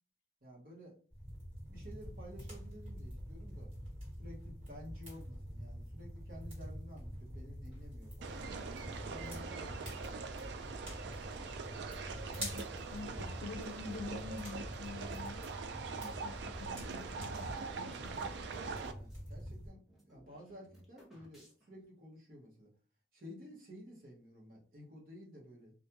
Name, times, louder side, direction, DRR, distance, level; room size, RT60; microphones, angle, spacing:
voice 1, 0.4-0.9 1.7-3.7 4.2-8.4 9.0-10.3 18.8-22.7 23.1-25.7, equal, 50° right, 0.9 m, -53 dB
sound 1, 1.1-19.7, equal, 30° right, 1.5 m, -46 dB
sound 2, 8.2-18.9, right 5 dB, 75° right, 0.3 m, -43 dB
voice 2, 12.4-15.5 15.9-18.3, left 4 dB, 90° left, 0.3 m, -47 dB
sound 3, 13.8-15.3 15.9-19.3 19.6-19.7 19.9-21.8, right 1 dB, ahead, 0.6 m, -62 dB
2.4 x 2.2 x 2.8 m
head